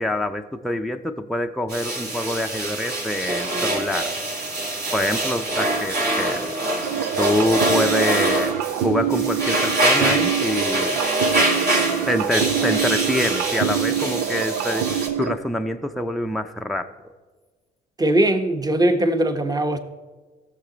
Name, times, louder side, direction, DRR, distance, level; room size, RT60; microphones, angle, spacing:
voice 1, 0.0-4.1 4.9-6.5 7.2-8.5 8.8-11.0 12.1-17.1, left 1 dB, ahead, 0.6 m, -25 dB
sound 1, 1.7-15.1, right 1 dB, 55° right, 2.5 m, -25 dB
sound 2, 6.8-15.3, right 9 dB, 85° right, 0.5 m, -25 dB
voice 2, 18.0-19.8, right 1 dB, 20° right, 1.1 m, -20 dB
17.0 x 6.6 x 4.0 m
supercardioid pair, 60°, 20 cm